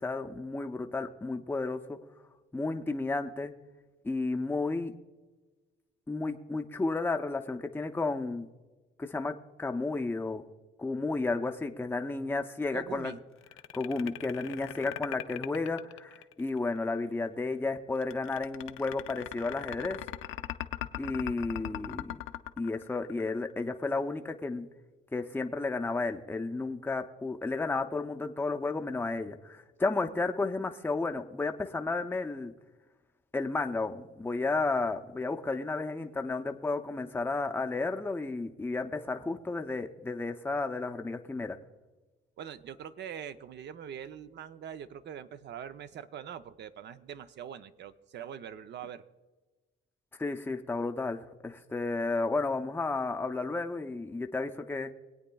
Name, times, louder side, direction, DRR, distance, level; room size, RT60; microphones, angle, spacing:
voice 1, 0.0-2.0 2.5-3.5 4.0-4.9 6.1-8.5 9.0-10.4 10.8-13.1 13.7-20.0 21.0-22.2 22.6-24.7 25.1-32.5 33.3-41.6 50.2-54.9, left 3 dB, 10° left, 5 dB, 0.6 m, -32 dB
voice 2, 12.7-13.2 42.4-49.0, right 8 dB, 60° right, 11 dB, 0.6 m, -43 dB
sound 1, 13.4-16.6 18.0-23.5, left 13 dB, 85° left, 0.5 m, -39 dB
23.5 x 8.7 x 2.3 m, 1.2 s
cardioid pair, 90°, 20 cm